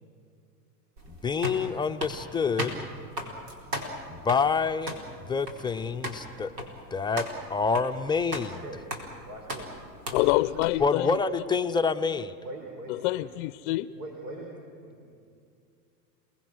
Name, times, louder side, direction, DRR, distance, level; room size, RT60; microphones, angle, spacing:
sound 1, 1.0-10.7, equal, 85° right, 4.4 m, -38 dB
voice 1, 1.1-2.9 4.1-5.0 5.3-6.5 6.9-8.6 10.8-12.4, left 5 dB, 10° left, 7 dB, 0.6 m, -27 dB
voice 2, 8.2-8.8 9.2-10.1 10.5-10.6 12.4-13.2 14.0-15.2, right 2 dB, 70° right, 1 dB, 4.8 m, -43 dB
voice 3, 10.1-11.2 12.9-13.9, left 18 dB, 50° left, 16 dB, 0.6 m, -26 dB
29.5 x 19.5 x 6.3 m, 2.4 s
hypercardioid pair, 115°, 47 cm